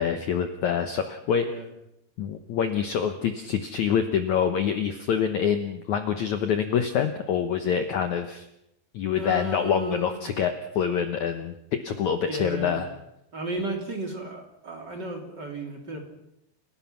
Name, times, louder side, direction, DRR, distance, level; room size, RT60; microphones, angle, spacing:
voice 1, 0.0-1.5 2.2-8.5 8.9-12.9, left 8 dB, 70° left, 7 dB, 1.9 m, -26 dB
voice 2, 9.1-10.2 11.8-12.9 13.3-16.0, right 2 dB, 30° right, 2 dB, 3.1 m, -34 dB
29.5 x 17.5 x 5.9 m, 0.84 s
omnidirectional pair, 4.7 m